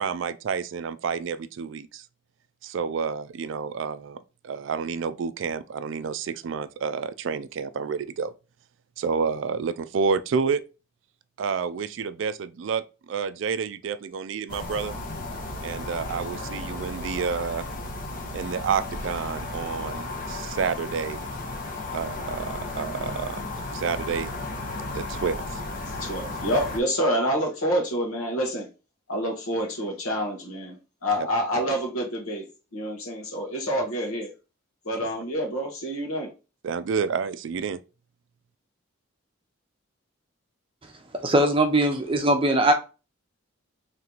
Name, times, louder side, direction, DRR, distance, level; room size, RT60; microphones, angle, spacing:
voice 1, 0.0-2.1 2.6-8.3 9.0-10.6 11.4-15.0 15.6-17.7 18.3-21.3 21.9-23.5 23.7-24.3 24.9-25.6 31.2-31.3 36.6-37.8, right 6 dB, 60° right, 0.3 m, -29 dB
sound 1, 14.5-26.8, left 2 dB, 40° left, 0.6 m, -34 dB
voice 2, 25.9-28.7 29.1-32.4 32.7-34.3 34.8-36.3, equal, 85° left, 1.4 m, -27 dB
voice 3, 41.2-42.7, right 1 dB, 25° right, 0.6 m, -20 dB
3.3 x 3.0 x 3.8 m
head